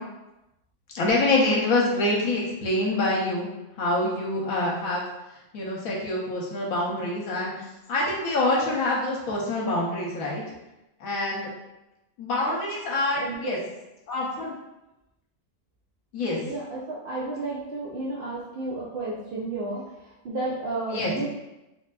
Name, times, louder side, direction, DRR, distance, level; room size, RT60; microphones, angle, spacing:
voice 1, 0.9-3.5 3.8-5.0 5.5-10.4 11.0-11.5 12.2-13.6 14.1-14.5 16.1-16.4 20.9-21.1, left 2 dB, 75° left, -4 dB, 1.1 m, -26 dB
voice 2, 13.1-13.5 16.5-21.2, right 2 dB, 85° right, -6 dB, 0.5 m, -32 dB
3.3 x 2.5 x 2.2 m, 0.96 s
omnidirectional pair, 1.5 m